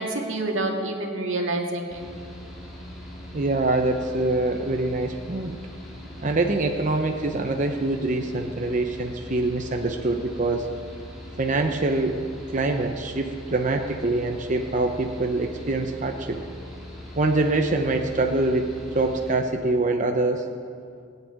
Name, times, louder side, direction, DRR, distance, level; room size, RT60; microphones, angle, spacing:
voice 1, 0.0-2.0, right 2 dB, 85° right, 1 dB, 2.1 m, -27 dB
Mechanical fan, 1.9-19.3, left 1 dB, ahead, 3.2 m, -41 dB
voice 2, 3.3-5.6 6.2-10.7 11.4-12.2 12.5-16.4 17.2-20.5, right 2 dB, 40° right, 4 dB, 0.8 m, -24 dB
18.5 x 8.1 x 9.4 m, 2.4 s
head